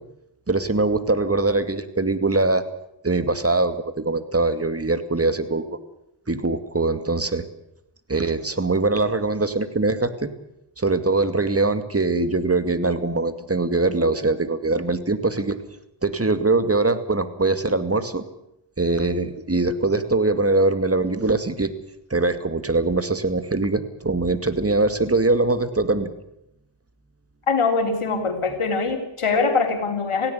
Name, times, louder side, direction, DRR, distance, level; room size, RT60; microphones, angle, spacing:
voice 1, 0.5-2.7 3.0-5.6 6.3-7.4 8.1-10.3 10.8-15.6 16.0-18.2 18.8-21.7 22.1-26.1, right 3 dB, 30° right, 11 dB, 2.4 m, -22 dB
voice 2, 27.5-30.3, left 4 dB, 85° left, 5 dB, 3.6 m, -22 dB
18.0 x 16.5 x 9.8 m, 0.82 s
cardioid pair, 45°, 50 cm